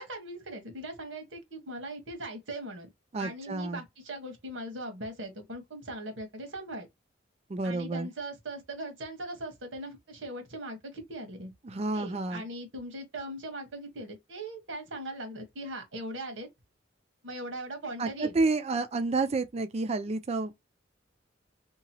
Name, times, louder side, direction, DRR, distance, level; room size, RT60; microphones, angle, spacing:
voice 1, 0.0-2.9 3.2-6.9 7.6-11.5 11.9-16.5 17.2-18.4, right 1 dB, 85° right, 1.3 m, -40 dB
voice 2, 3.1-3.8 7.5-8.1 11.6-12.4 18.0-20.6, right 3 dB, 35° right, 0.4 m, -30 dB
2.9 x 2.3 x 2.7 m
head